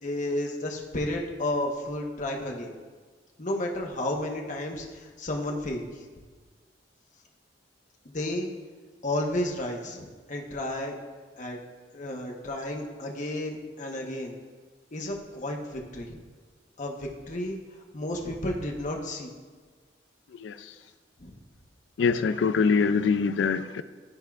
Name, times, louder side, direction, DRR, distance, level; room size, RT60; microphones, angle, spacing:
voice 1, 0.0-2.7 3.4-5.9 8.0-8.5 9.0-11.0 11.4-11.6 11.9-14.3 14.9-16.2 16.8-17.6 17.9-19.3 21.2-21.4, left 1 dB, 45° left, 0.9 m, -32 dB
voice 2, 20.3-20.8 22.0-23.8, left 5 dB, 75° left, 0.4 m, -24 dB
12.5 x 4.4 x 2.4 m
head